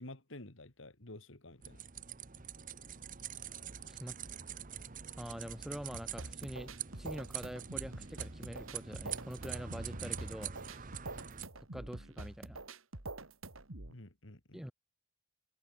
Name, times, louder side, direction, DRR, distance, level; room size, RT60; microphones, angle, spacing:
voice 1, 0.0-1.8 13.9-14.7, left 2 dB, 70° left, 2.6 m, -51 dB
sound 1, 1.6-11.4, right 8 dB, 40° right, 1.1 m, -45 dB
voice 2, 5.2-10.5 10.8-10.9 11.7-12.6 14.5-14.7, equal, ahead, 1.2 m, -45 dB
sound 2, 5.9-13.9, right 2 dB, 85° right, 3.0 m, -46 dB
head